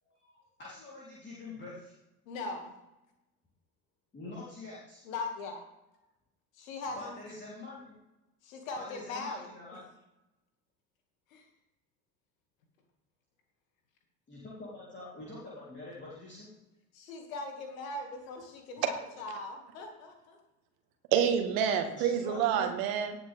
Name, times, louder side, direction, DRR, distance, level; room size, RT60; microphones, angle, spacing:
voice 1, 0.0-1.9 4.1-5.0 7.0-7.9 8.8-9.8 14.3-16.6 22.0-22.8, left 2 dB, 25° left, 3.6 m, -46 dB
voice 2, 2.3-2.7 5.0-5.6 6.5-7.2 8.4-9.5 11.3-11.4 16.9-18.4 18.7-20.4, left 3 dB, 65° left, 2.4 m, -40 dB
voice 3, 21.1-23.2, right 8 dB, 55° right, 1.7 m, -28 dB
18.5 x 7.2 x 3.6 m
figure-of-eight pair, 60°, 44 cm